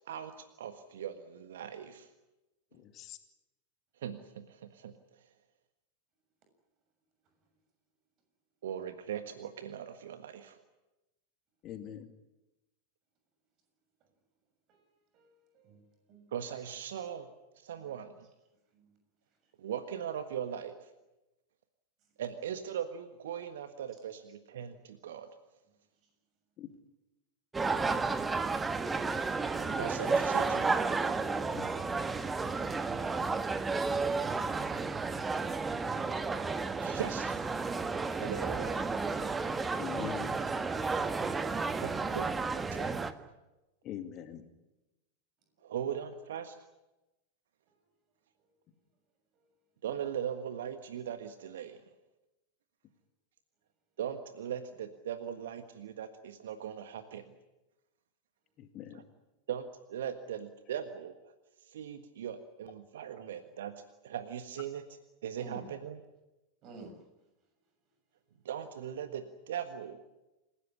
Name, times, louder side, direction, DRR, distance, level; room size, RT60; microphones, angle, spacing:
voice 1, 0.1-2.1 4.0-4.9 8.6-10.6 16.3-17.3 17.6-18.3 19.6-20.9 22.2-25.3 29.6-30.8 36.8-37.3 38.2-38.8 41.8-43.0 45.6-46.6 49.8-51.8 54.0-57.2 58.9-59.0 59.5-61.3 61.6-64.8 65.2-66.0 68.4-70.0, right 9 dB, 60° right, 1.5 m, -39 dB
voice 2, 2.7-3.2 11.6-12.1 26.6-26.7 31.5-31.7 39.8-40.3 43.8-44.4 58.6-59.0, left 10 dB, 35° left, 2.3 m, -43 dB
voice 3, 15.1-15.8 16.1-16.2 18.7-18.9 45.6-45.7 65.4-65.7 66.6-67.0, right 3 dB, 35° right, 6.9 m, -50 dB
sound 1, 27.5-43.1, right 4 dB, 15° right, 1.5 m, -32 dB
28.0 x 16.5 x 9.9 m
figure-of-eight pair, 90°, 0 cm